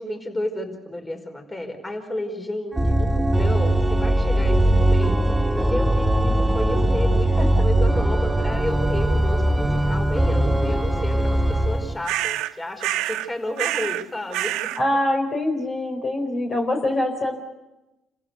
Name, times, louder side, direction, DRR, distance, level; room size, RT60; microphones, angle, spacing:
voice 1, 0.0-5.2 5.5-14.5, left 1 dB, 25° left, 4 dB, 4.9 m, -32 dB
Organ, 2.7-12.0, right 1 dB, 10° right, 2.6 m, -20 dB
sound 1, 12.0-12.5 12.8-13.3 13.6-14.1 14.3-14.8, right 14 dB, 80° right, 0.7 m, -26 dB
voice 2, 14.8-17.3, left 1 dB, 45° left, 2 dB, 4.6 m, -24 dB
28.0 x 15.5 x 8.3 m, 1.0 s
hypercardioid pair, 55°, 0 cm